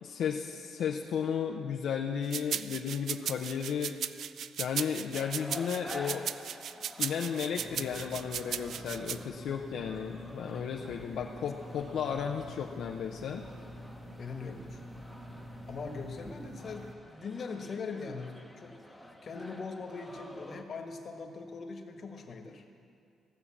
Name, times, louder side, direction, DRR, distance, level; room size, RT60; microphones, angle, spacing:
voice 1, 0.0-3.9 4.6-6.3 7.0-13.5, left 7 dB, 70° left, 1 dB, 0.7 m, -34 dB
sound 1, 2.3-9.2, right 9 dB, 65° right, 0.3 m, -36 dB
sound 2, 5.1-20.6, left 1 dB, ahead, 1.1 m, -50 dB
sound 3, 7.6-16.9, equal, 50° right, 1.4 m, -47 dB
voice 2, 14.2-14.8 15.7-22.6, left 4 dB, 50° left, 4 dB, 1.4 m, -41 dB
16.0 x 6.8 x 7.3 m, 2.4 s
cardioid pair, 90°, 0 cm